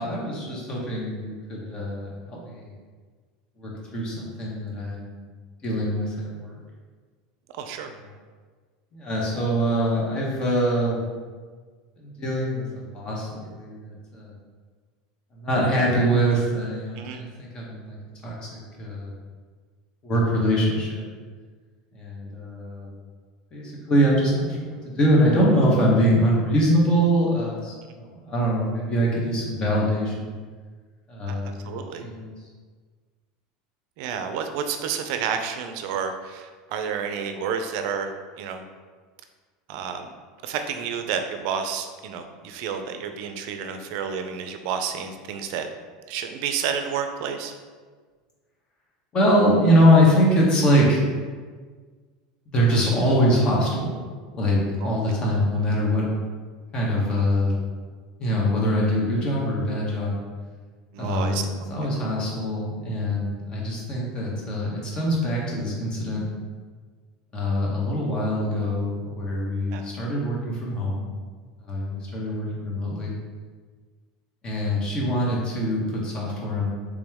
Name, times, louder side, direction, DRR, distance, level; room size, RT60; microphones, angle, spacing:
voice 1, 0.0-2.7 3.6-5.2 5.6-6.6 8.9-11.0 12.0-14.3 15.4-18.0 18.2-19.1 20.0-21.0 21.9-22.9 23.5-30.3 31.1-32.3 49.1-51.1 52.5-54.0 54.3-56.0 56.7-57.5 58.2-60.2 61.0-61.4 61.7-66.2 67.3-71.0 71.6-73.1 74.4-76.7, equal, 35° left, -3 dB, 1.1 m, -23 dB
voice 2, 7.5-7.9 17.0-17.3 31.3-31.4 31.6-32.1 34.0-38.6 39.7-40.1 40.4-45.7 46.1-47.5 60.9-61.5 69.7-69.9, right 7 dB, 65° right, 7 dB, 0.4 m, -30 dB
3.5 x 2.9 x 3.5 m, 1.5 s
supercardioid pair, 115°, 3 cm